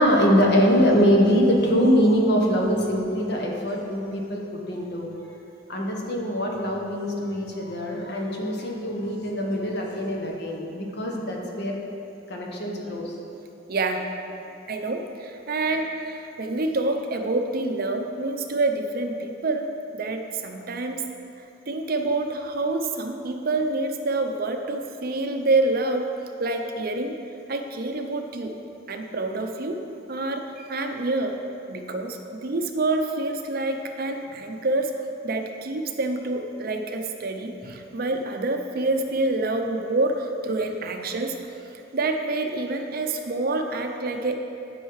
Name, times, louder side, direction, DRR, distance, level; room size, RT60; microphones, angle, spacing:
voice 1, 0.0-5.2 5.7-11.8 12.3-13.1 14.5-14.6, equal, 60° left, 0 dB, 1.3 m, -23 dB
voice 2, 13.7-14.0 14.7-19.7 20.0-21.0 21.4-26.1 26.4-27.2 27.5-28.6 28.9-29.8 30.1-31.4 31.7-34.9 35.2-41.4 41.9-44.4, right 2 dB, 50° right, 4 dB, 0.7 m, -27 dB
11.0 x 5.6 x 4.8 m, 2.7 s
head